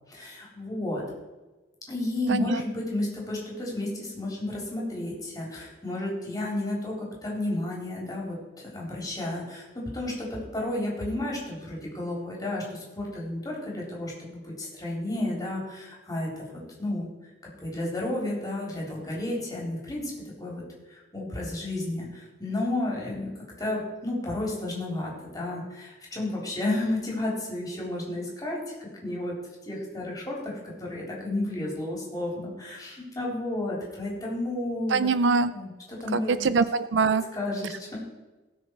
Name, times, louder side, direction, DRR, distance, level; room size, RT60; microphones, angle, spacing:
voice 1, 0.1-1.0 1.9-16.4 16.8-17.1 17.6-20.1 20.4-20.6 20.9-29.3 29.6-35.1 35.5-36.3 37.3-38.0, left 1 dB, 20° left, -3 dB, 3.7 m, -32 dB
voice 2, 2.3-2.6 34.9-35.5 36.1-37.2, right 4 dB, 75° right, 15 dB, 0.5 m, -23 dB
18.0 x 6.4 x 4.6 m, 1.2 s
head